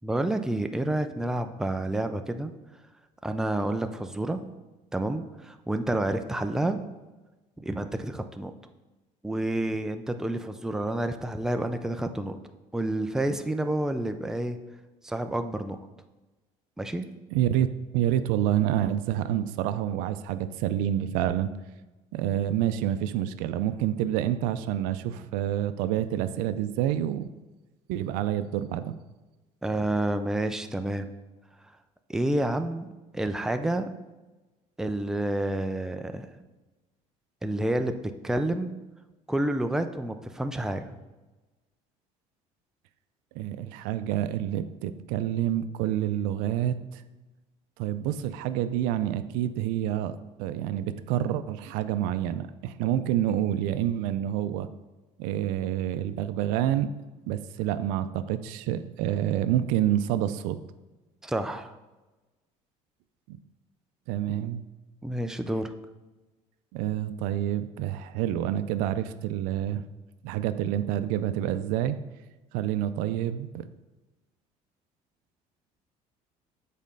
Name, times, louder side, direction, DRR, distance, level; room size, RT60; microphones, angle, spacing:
voice 1, 0.0-2.5 3.2-4.4 4.9-6.8 7.6-8.5 9.2-12.4 12.7-14.6 15.0-15.8 16.8-17.1 29.6-31.1 32.1-32.9 33.1-33.9 34.8-36.3 37.4-38.7 39.3-40.9 61.2-61.7 65.0-65.7, right 1 dB, 5° right, 7 dB, 0.4 m, -29 dB
voice 2, 17.3-17.7 17.9-21.5 22.1-27.3 27.9-29.0 43.4-47.0 47.8-54.7 55.2-56.9 57.3-60.6 63.3-63.4 64.1-64.6 66.7-69.8 70.2-72.0 72.5-73.7, right 11 dB, 90° right, 12 dB, 0.4 m, -28 dB
7.3 x 4.2 x 5.3 m, 1.1 s
cardioid pair, 120°, 14 cm